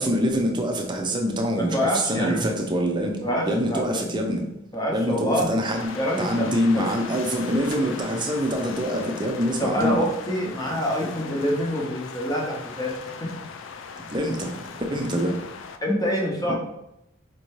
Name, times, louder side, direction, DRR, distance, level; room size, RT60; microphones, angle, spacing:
voice 1, 0.0-4.4 4.9-10.0 14.1-14.5 14.8-15.3, equal, 20° right, 2 dB, 0.5 m, -25 dB
voice 2, 1.6-2.5 3.2-4.0 4.7-5.6 5.9-6.5 6.7-6.9 9.6-13.3 15.8-16.6, equal, 20° left, -1 dB, 0.7 m, -26 dB
sound 1, 5.8-15.8, left 6 dB, 65° left, 0.3 m, -39 dB
4.3 x 2.6 x 3.1 m, 0.84 s
head